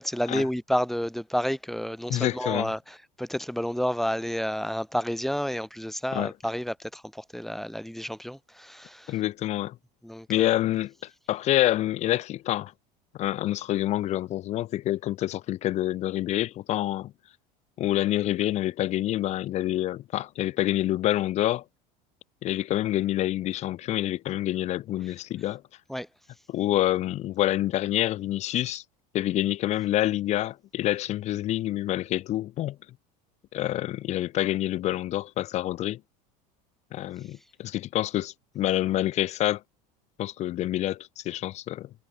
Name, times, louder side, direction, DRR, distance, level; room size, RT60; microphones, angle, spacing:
voice 1, 0.0-9.2 10.0-10.5 25.9-26.1, equal, ahead, 0.7 m, -30 dB
voice 2, 2.1-2.7 6.1-6.3 9.1-9.8 10.3-12.7 13.1-17.1 17.8-21.6 22.4-25.6 26.5-28.8 29.1-32.8 33.5-36.0 36.9-39.6 40.2-41.9, left 14 dB, 35° left, 0.3 m, -27 dB
supercardioid pair, 110°, 20 cm